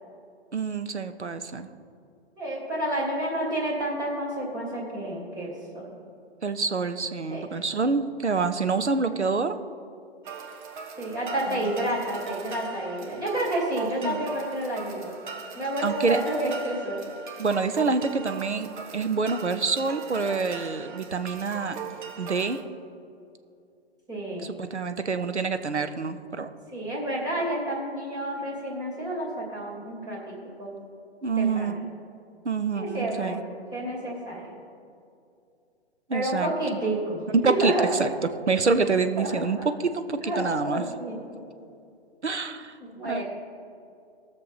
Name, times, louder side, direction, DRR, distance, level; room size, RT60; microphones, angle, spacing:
voice 1, 0.5-1.7 6.4-9.6 11.5-11.8 14.0-14.3 15.8-16.2 17.4-21.8 22.2-22.6 24.4-26.5 31.2-31.9 32.4-33.4 36.1-36.5 37.3-38.1 38.5-40.8 42.2-42.8 43.0-43.2, right 4 dB, 90° right, 9 dB, 0.8 m, -27 dB
voice 2, 2.4-5.9 7.3-7.4 11.0-15.1 15.5-17.0 24.1-24.5 26.7-30.7 31.4-31.7 32.8-34.5 36.1-37.2 37.4-37.9 39.2-39.7 40.2-41.2 42.8-43.2, right 1 dB, 10° right, -5 dB, 2.7 m, -30 dB
sound 1, 10.3-22.6, right 5 dB, 45° right, 1.3 m, -40 dB
19.0 x 6.6 x 4.1 m, 2.5 s
figure-of-eight pair, 125°, 33 cm